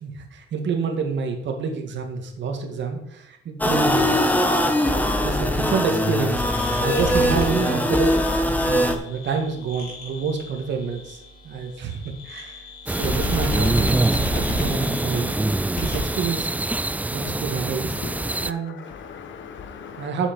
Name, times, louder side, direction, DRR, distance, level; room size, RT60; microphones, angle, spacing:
voice 1, 0.0-4.2 4.5-6.4 6.8-8.1 8.7-15.4 15.8-16.7 17.1-18.8 20.0-20.3, right 5 dB, 65° right, 4 dB, 1.9 m, -28 dB
sound 1, 3.6-9.0, left 1 dB, 10° left, 1.2 m, -21 dB
sound 2, 6.0-17.3, left 1 dB, 50° left, 3.8 m, -33 dB
sound 3, 12.9-18.5, right 2 dB, 10° right, 0.3 m, -25 dB
voice 2, 17.9-20.1, left 6 dB, 70° left, 8 dB, 1.3 m, -39 dB
7.1 x 7.0 x 5.3 m, 0.78 s
cardioid pair, 90°, 20 cm